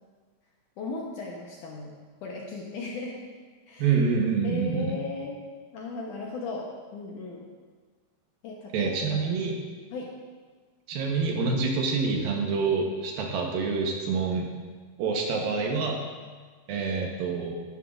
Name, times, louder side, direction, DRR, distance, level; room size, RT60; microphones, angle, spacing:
voice 1, 0.8-1.9 2.2-3.2 3.7-4.0 4.4-5.4 5.7-7.5 8.4-9.3 9.9-10.1, left 3 dB, 70° left, -2 dB, 2.1 m, -36 dB
voice 2, 3.8-4.9 8.7-9.5 10.9-14.5 15.0-16.0 16.7-17.5, right 5 dB, 75° right, 1 dB, 2.6 m, -26 dB
13.0 x 11.5 x 2.5 m, 1.5 s
omnidirectional pair, 4.6 m